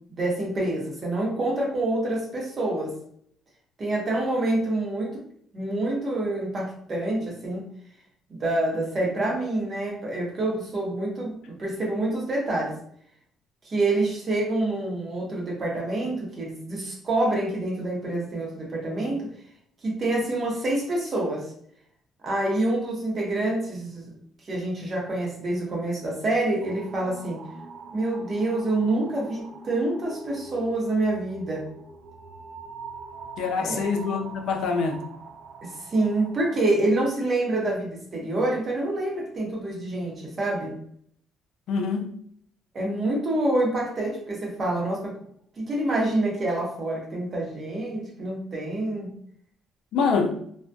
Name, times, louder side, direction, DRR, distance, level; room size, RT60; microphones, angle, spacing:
voice 1, 0.1-2.9 3.8-5.2 5.5-7.6 8.3-12.7 13.7-19.3 19.8-21.4 22.2-24.1 24.5-27.4 27.9-31.7 33.6-33.8 35.6-40.7 42.7-45.1 45.6-49.1, right 2 dB, 35° right, -2 dB, 0.9 m, -27 dB
looming Abyss, 26.6-36.6, right 4 dB, 55° right, 0.3 m, -43 dB
voice 2, 33.4-35.0 41.7-42.1 49.9-50.3, left 5 dB, 70° left, 4 dB, 0.4 m, -25 dB
2.6 x 2.3 x 2.2 m, 0.64 s
cardioid pair, 120°, 0 cm